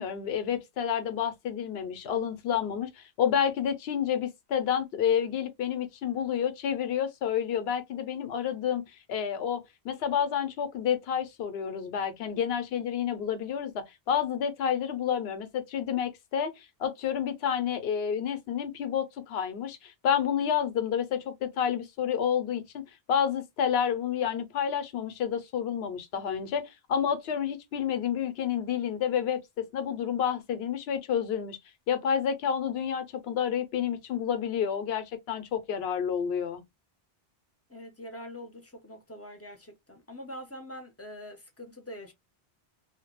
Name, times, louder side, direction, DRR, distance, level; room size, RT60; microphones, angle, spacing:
voice 1, 0.0-22.8 23.1-31.6 31.9-36.6, left 8 dB, 75° left, 0.8 m, -29 dB
voice 2, 37.7-42.1, equal, 20° left, 0.5 m, -44 dB
2.2 x 2.1 x 2.9 m
omnidirectional pair, 1.0 m